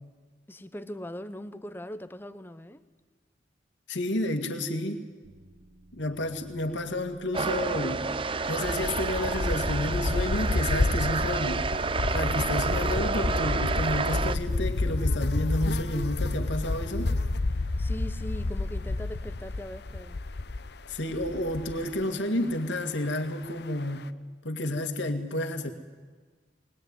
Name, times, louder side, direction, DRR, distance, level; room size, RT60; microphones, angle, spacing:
voice 1, 0.5-2.8 17.8-20.2, left 1 dB, 10° left, 0.9 m, -40 dB
voice 2, 3.9-5.0 5.9-8.1 8.5-11.6 12.1-17.1 20.9-24.1 24.4-25.7, left 1 dB, 85° left, 2.1 m, -30 dB
sound 1, 5.2-18.0, right 2 dB, 75° right, 1.9 m, -59 dB
sound 2, 7.3-14.4, right 4 dB, 30° right, 0.6 m, -29 dB
sound 3, 8.4-22.0, left 2 dB, 65° left, 0.8 m, -30 dB
20.5 x 20.5 x 9.7 m
head